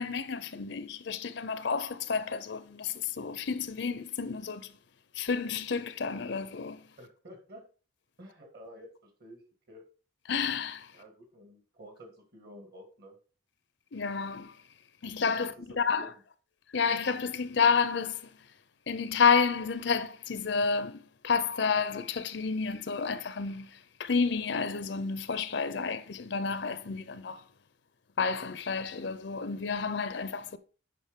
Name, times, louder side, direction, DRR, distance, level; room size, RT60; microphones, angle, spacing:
voice 1, 0.0-4.7 5.2-6.8 10.3-10.9 13.9-14.5 15.0-16.1 16.7-18.3 18.9-27.4 28.2-30.6, left 5 dB, 55° left, 0.6 m, -30 dB
voice 2, 7.0-7.6 8.2-9.9 10.9-13.2 15.4-16.1, equal, 50° right, 2.2 m, -51 dB
9.2 x 5.3 x 3.7 m
head